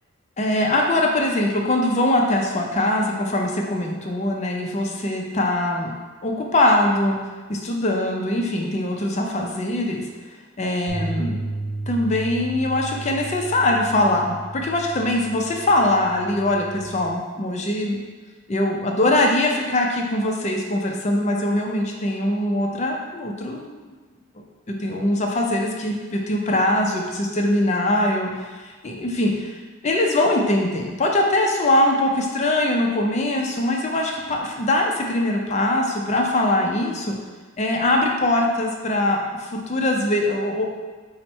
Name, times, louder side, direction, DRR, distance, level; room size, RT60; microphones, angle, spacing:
voice 1, 0.4-5.9 6.2-7.2 7.5-10.1 10.6-11.4 11.9-18.0 18.5-23.8 24.7-29.5 29.8-37.2 37.6-40.7, left 1 dB, 35° left, 1 dB, 0.4 m, -22 dB
sound 1, 10.9-17.1, right 2 dB, 35° right, 1.0 m, -33 dB
4.3 x 2.1 x 4.3 m, 1.4 s
head